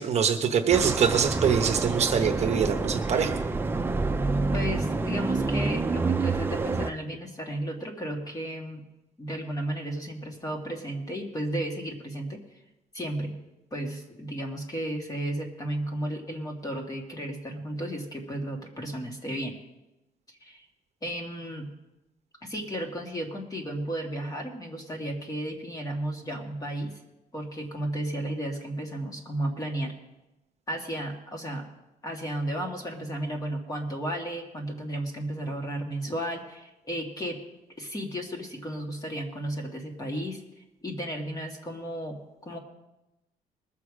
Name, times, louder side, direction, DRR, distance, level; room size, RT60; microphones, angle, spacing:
voice 1, 0.0-3.3, right 7 dB, 45° right, 5 dB, 1.0 m, -24 dB
sound 1, 0.7-6.9, right 3 dB, 15° right, 0.5 m, -27 dB
voice 2, 4.5-8.8 9.2-12.4 12.9-13.4 13.7-19.5 20.4-20.7 21.0-21.7 22.4-27.0 27.3-29.9 30.7-31.7 32.0-37.4 37.8-40.4 40.8-42.6, right 1 dB, 25° left, 1 dB, 2.1 m, -34 dB
21.0 x 7.1 x 4.9 m, 0.97 s
cardioid pair, 150°, 16 cm